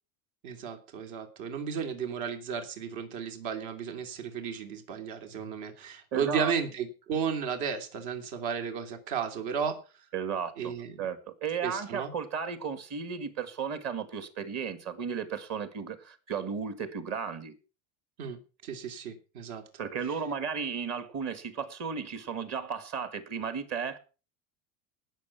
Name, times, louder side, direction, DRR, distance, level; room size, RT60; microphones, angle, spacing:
voice 1, 0.4-9.8 10.6-11.1 11.6-12.1 18.2-19.6, right 7 dB, 60° right, 3.1 m, -34 dB
voice 2, 6.1-6.5 10.1-17.5 19.8-24.0, right 6 dB, 35° right, 2.1 m, -34 dB
19.0 x 7.0 x 5.9 m
supercardioid pair, 145°, 43 cm